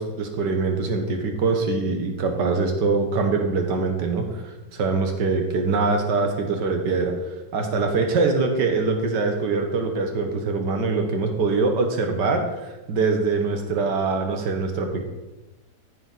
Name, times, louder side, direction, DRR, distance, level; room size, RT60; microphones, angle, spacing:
voice 1, 0.0-4.4 4.7-7.1 7.5-12.4 12.9-15.0, right 4 dB, 75° right, 4 dB, 1.7 m, -23 dB
9.9 x 7.4 x 4.0 m, 1.1 s
omnidirectional pair, 1.9 m